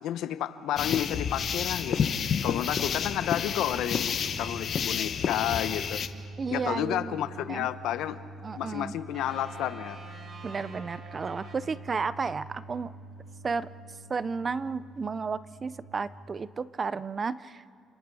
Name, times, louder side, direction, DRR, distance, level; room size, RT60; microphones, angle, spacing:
voice 1, 0.0-2.1 2.4-6.0 6.5-8.2 8.6-10.0, left 11 dB, 75° left, 13 dB, 0.9 m, -31 dB
sound 1, 0.8-6.1, left 7 dB, 45° left, 0.9 m, -30 dB
sound 2, 4.0-15.8, right 2 dB, 70° right, 5.2 m, -46 dB
voice 2, 6.4-7.2 7.5-7.7 8.4-8.9 10.4-12.9 13.4-13.7 14.1-17.7, right 5 dB, 25° right, 17 dB, 0.5 m, -32 dB
sound 3, 9.1-12.4, right 3 dB, 45° right, 2.5 m, -47 dB
29.5 x 27.0 x 4.8 m, 2.2 s
cardioid pair, 145°, 0 cm